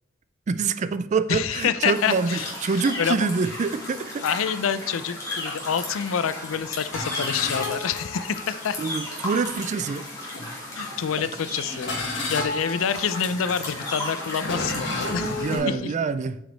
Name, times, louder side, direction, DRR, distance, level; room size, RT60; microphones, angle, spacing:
voice 1, 0.5-4.3 8.8-10.1 15.3-16.4, right 5 dB, 35° right, 13 dB, 0.3 m, -26 dB
voice 2, 1.3-2.5 3.0-3.2 4.2-8.8 10.8-12.0 12.3-15.8, left 7 dB, 80° left, 14 dB, 0.4 m, -27 dB
sound 1, 1.8-15.6, left 1 dB, 15° left, 2.2 m, -35 dB
sound 2, 6.9-8.6 9.4-9.6 10.3-10.9 11.7-15.8, left 2 dB, 65° left, 1.9 m, -32 dB
6.2 x 5.0 x 4.0 m, 0.87 s
head